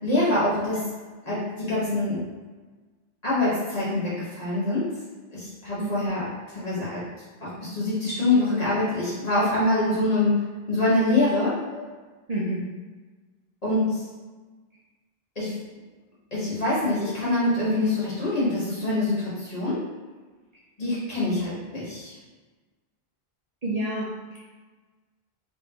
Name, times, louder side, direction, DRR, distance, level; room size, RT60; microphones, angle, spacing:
voice 1, 0.0-0.9 1.2-2.2 3.2-4.9 5.3-7.0 7.4-11.6 13.6-14.0 15.3-15.5 16.3-19.8 20.8-22.1, left 2 dB, 40° left, -9 dB, 1.6 m, -25 dB
voice 2, 12.3-12.6 23.6-24.1 24.3-24.4, right 1 dB, 45° right, -7 dB, 0.8 m, -28 dB
3.7 x 3.1 x 3.0 m, 1.3 s
omnidirectional pair, 1.0 m